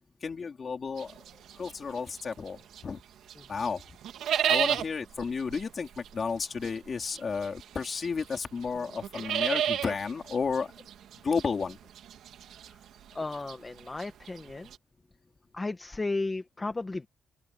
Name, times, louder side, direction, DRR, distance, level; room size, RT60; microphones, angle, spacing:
voice 1, 0.2-1.2 1.6-3.0 3.5-3.8 4.5-10.7 11.2-11.8, left 5 dB, 30° left, 3.7 m, -32 dB
sound 1, 1.0-3.0 3.3-14.8, right 10 dB, 80° right, 2.1 m, -33 dB
voice 2, 13.1-14.7 15.5-17.1, left 3 dB, 15° left, 1.1 m, -34 dB
open air
cardioid pair, 170°, 0 cm